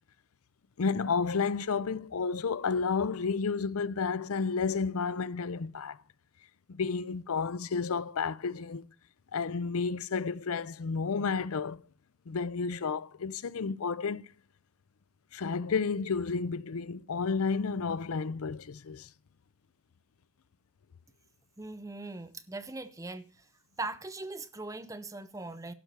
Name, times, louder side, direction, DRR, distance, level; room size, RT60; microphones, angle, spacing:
voice 1, 0.8-6.0 6.7-8.9 9.3-11.8 12.3-14.3 15.3-19.1, left 5 dB, 80° left, 0.5 m, -31 dB
voice 2, 21.6-23.4 23.8-25.7, right 2 dB, 15° right, 0.6 m, -40 dB
12.0 x 4.6 x 7.9 m
head